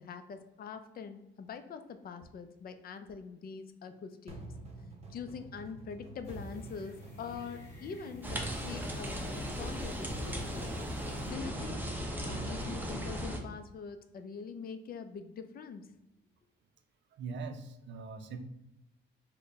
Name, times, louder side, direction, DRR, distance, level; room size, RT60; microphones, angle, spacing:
voice 1, 0.0-4.5 5.1-10.8 11.2-11.9 12.2-15.9, left 6 dB, 50° left, 8 dB, 0.4 m, -44 dB
sound 1, 4.3-13.5, right 2 dB, 30° right, 0.8 m, -48 dB
sound 2, 6.2-11.3, equal, 15° left, 1.4 m, -56 dB
sound 3, 8.2-13.4, equal, 10° right, 0.6 m, -37 dB
voice 2, 17.1-18.4, right 4 dB, 65° right, 7 dB, 0.5 m, -41 dB
3.9 x 2.1 x 3.4 m, 0.93 s
cardioid pair, 90°, 20 cm